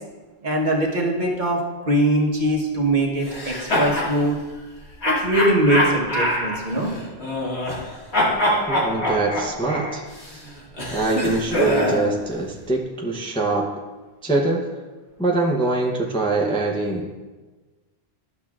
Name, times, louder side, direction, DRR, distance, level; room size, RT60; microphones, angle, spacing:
voice 1, 0.4-4.4 5.0-6.9, right 1 dB, 45° right, -1 dB, 1.3 m, -22 dB
sound 1, 3.2-4.1 5.0-7.9 8.1-12.1, left 1 dB, 80° left, 2.1 m, -24 dB
voice 2, 8.7-10.0 10.9-13.7 14.2-14.7 15.2-17.2, right 2 dB, 5° left, -2 dB, 0.6 m, -23 dB
12.0 x 6.1 x 2.4 m, 1.3 s
omnidirectional pair, 1.1 m